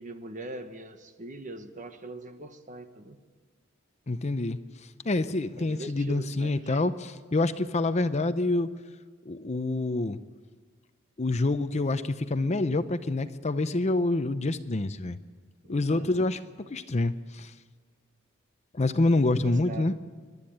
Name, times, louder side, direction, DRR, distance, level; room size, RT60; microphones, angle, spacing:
voice 1, 0.0-3.2 5.6-6.8 15.6-16.3 19.1-20.0, right 1 dB, 35° right, 8 dB, 1.3 m, -42 dB
voice 2, 4.1-4.6 5.0-8.7 9.3-10.2 11.2-15.2 15.7-16.4 16.7-17.5 18.7-19.9, left 2 dB, 35° left, 11 dB, 0.6 m, -27 dB
27.0 x 12.0 x 8.7 m, 1.5 s
head